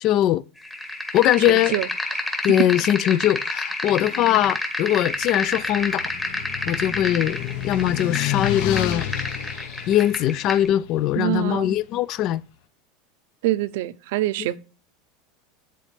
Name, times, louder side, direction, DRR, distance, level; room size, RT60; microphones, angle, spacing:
voice 1, 0.0-0.4 1.1-1.8 2.4-6.0 6.7-7.4 7.6-9.1 9.9-12.4, left 12 dB, 40° left, 0.3 m, -21 dB
sound 1, 0.6-10.7, left 1 dB, 10° left, 1.1 m, -30 dB
voice 2, 1.4-2.2 11.2-11.7 13.4-14.6, right 16 dB, 70° right, 0.6 m, -26 dB
sound 2, 5.3-11.5, left 11 dB, 60° left, 0.9 m, -31 dB
10.0 x 4.1 x 3.3 m
supercardioid pair, 160°, 0 cm